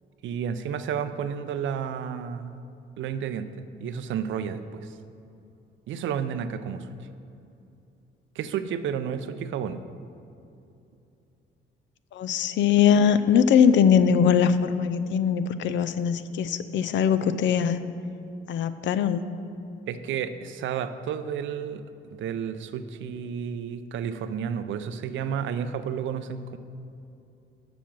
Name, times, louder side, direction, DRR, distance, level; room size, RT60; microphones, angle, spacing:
voice 1, 0.2-2.5 3.0-3.5 3.8-5.0 5.9-6.9 8.4-9.8 19.9-21.8 22.1-26.6, right 8 dB, 75° right, 11 dB, 0.5 m, -31 dB
voice 2, 12.1-17.8 18.5-19.3, left 7 dB, 70° left, 12 dB, 0.5 m, -21 dB
7.0 x 6.0 x 7.3 m, 2.7 s
cardioid pair, 90°, 20 cm